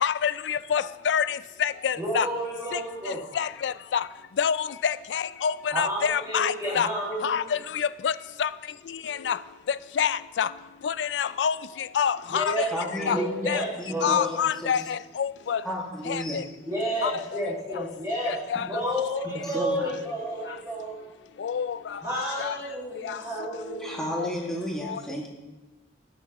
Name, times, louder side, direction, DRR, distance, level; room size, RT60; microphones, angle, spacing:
voice 1, 0.0-1.2 1.6-2.3 3.4-3.7 4.4-4.6 4.8-6.9 7.2-7.4 8.0-8.1 8.4-8.5 9.3-9.4 10.0-10.1 10.4-10.5 10.8-11.5 12.0-12.4 13.1-13.2 13.5-13.6 14.0-14.8 15.2-15.6 17.0-17.1 21.4-21.7, left 8 dB, 85° left, 0.4 m, -25 dB
voice 2, 2.0-3.3 5.7-7.5 12.3-14.5 16.7-18.4 18.7-21.0 22.0-24.0, equal, 20° right, 2.0 m, -31 dB
voice 3, 12.7-14.8 15.6-16.4 19.2-19.9 23.8-25.3, equal, 5° left, 2.0 m, -33 dB
18.0 x 6.7 x 3.0 m
head